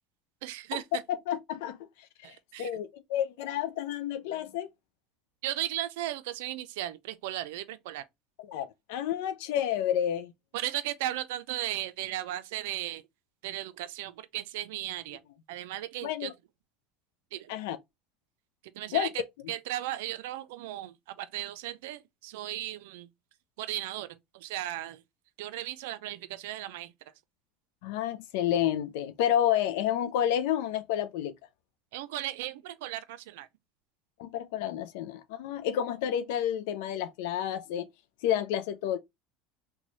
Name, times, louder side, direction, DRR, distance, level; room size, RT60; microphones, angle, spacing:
voice 1, 0.4-0.8 2.2-2.7 5.4-8.0 10.5-13.0 13.4-15.2 15.5-16.3 17.3-17.5 18.7-19.1 19.5-23.1 23.6-25.0 25.4-26.9 31.9-33.5, right 14 dB, 80° right, 0.4 m, -36 dB
voice 2, 1.3-1.8 2.2-4.7 8.4-10.3 16.0-16.3 17.5-17.8 18.9-19.1 27.8-31.3 34.2-37.9 38.2-39.0, left 10 dB, 80° left, 0.4 m, -30 dB
3.1 x 2.2 x 3.9 m
supercardioid pair, 110°, 0 cm